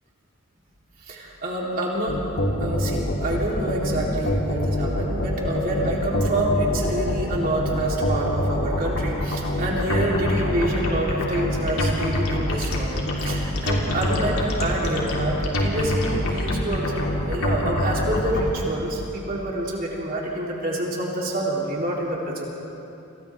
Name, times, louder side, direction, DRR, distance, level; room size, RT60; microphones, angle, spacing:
voice 1, 1.0-2.2 2.6-22.4, right 1 dB, 40° right, -4 dB, 3.6 m, -27 dB
sound 1, 2.1-18.4, left 1 dB, 85° left, 3.5 m, -25 dB
30.0 x 27.5 x 3.7 m, 2.8 s
head